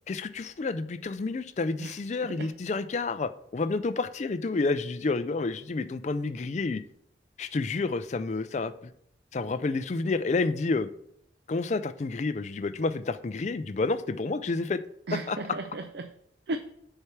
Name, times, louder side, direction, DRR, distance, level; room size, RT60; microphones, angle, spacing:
voice 1, 0.1-6.8 7.4-8.9 9.3-10.9 11.5-14.8 15.3-15.4, left 3 dB, 40° left, 0.4 m, -29 dB
voice 2, 1.8-2.5 15.1-16.1 16.5-16.6, right 2 dB, 65° right, 0.5 m, -36 dB
6.6 x 4.5 x 5.9 m
head